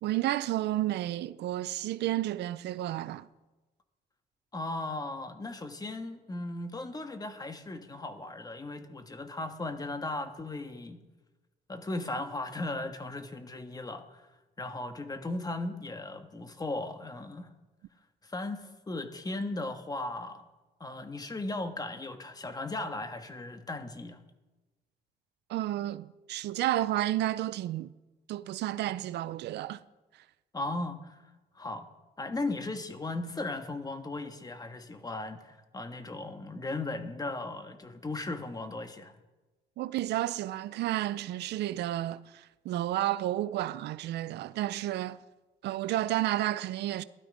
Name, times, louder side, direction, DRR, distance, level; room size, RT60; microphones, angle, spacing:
voice 1, 0.0-3.3 25.5-27.9 28.3-29.8 39.8-45.2 45.6-47.0, right 14 dB, 85° right, 0.5 m, -31 dB
voice 2, 4.5-11.0 11.7-14.3 14.6-17.5 18.2-20.4 20.8-24.2 30.5-31.2 31.5-31.9 32.2-39.1, left 2 dB, 20° left, 1.5 m, -37 dB
16.5 x 12.0 x 5.1 m
cardioid pair, 105°, 17 cm